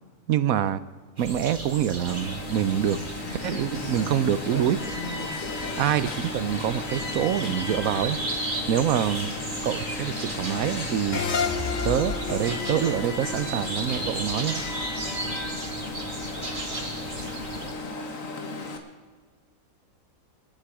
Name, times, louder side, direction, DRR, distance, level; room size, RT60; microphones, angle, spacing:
voice 1, 0.3-0.8 1.2-3.0 3.3-4.8 5.7-8.2 8.7-9.3 9.6-11.2 11.8-14.6, right 10 dB, 80° right, 15 dB, 1.1 m, -26 dB
sound 1, 1.2-17.7, right 2 dB, 35° right, 2.1 m, -36 dB
Alarm, 2.1-18.8, left 3 dB, 70° left, 1.9 m, -34 dB
sound 2, 11.1-14.4, left 5 dB, 40° left, 0.8 m, -30 dB
27.0 x 9.1 x 4.9 m, 1.4 s
omnidirectional pair, 1.5 m